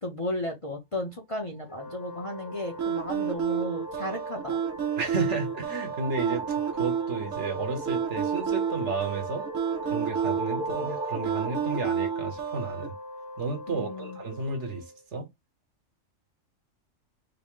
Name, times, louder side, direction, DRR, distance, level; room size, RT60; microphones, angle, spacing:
voice 1, 0.0-4.6 13.7-14.2, left 1 dB, 30° left, 0.7 m, -34 dB
Wind instrument woodwind instrument, 1.7-15.1, left 2 dB, 65° left, 1.3 m, -42 dB
sound 1, 1.9-13.3, right 2 dB, 50° right, 0.8 m, -38 dB
sound 2, 2.8-12.9, right 8 dB, 90° right, 1.0 m, -31 dB
voice 2, 5.0-6.5 6.7-9.5 9.9-12.9 13.4-14.8 15.1-15.3, right 4 dB, 65° right, 1.4 m, -32 dB
3.9 x 2.1 x 3.7 m
omnidirectional pair, 1.3 m